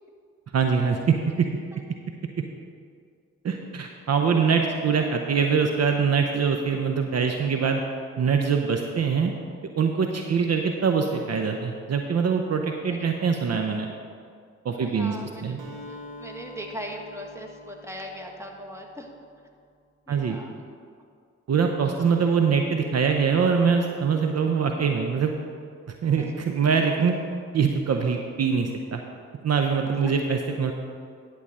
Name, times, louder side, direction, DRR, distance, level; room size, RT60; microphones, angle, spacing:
voice 1, 0.5-1.5 3.4-7.8 8.2-9.3 9.8-13.9 14.6-15.2 15.4-15.6 20.1-20.4 21.5-25.3 26.0-27.2 27.5-29.0 29.4-30.7, right 6 dB, 55° right, 4 dB, 0.8 m, -23 dB
voice 2, 4.5-5.2 12.9-13.1 14.8-15.6 15.9-19.1 20.1-20.5 21.9-22.1 26.2-26.3 30.0-30.1, equal, 10° right, 1 dB, 1.7 m, -40 dB
Acoustic guitar, 15.6-19.4, left 1 dB, 75° right, 1.5 m, -45 dB
11.0 x 4.0 x 7.4 m, 2.2 s
supercardioid pair, 45°, 31 cm